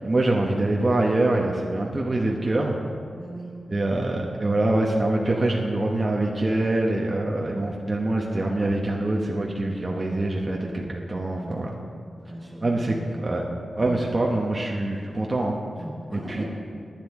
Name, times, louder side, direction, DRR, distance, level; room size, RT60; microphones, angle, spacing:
voice 1, 0.0-2.8 3.7-11.7 12.6-13.0 13.2-13.4 13.8-15.6 16.3-16.4, right 2 dB, 25° right, -1 dB, 0.9 m, -24 dB
voice 2, 3.1-3.5 11.3-11.7 12.2-13.2 13.7-14.1 15.7-16.4, equal, 10° right, -3 dB, 3.1 m, -38 dB
18.5 x 10.0 x 3.6 m, 2.4 s
wide cardioid pair, 155°, 0 cm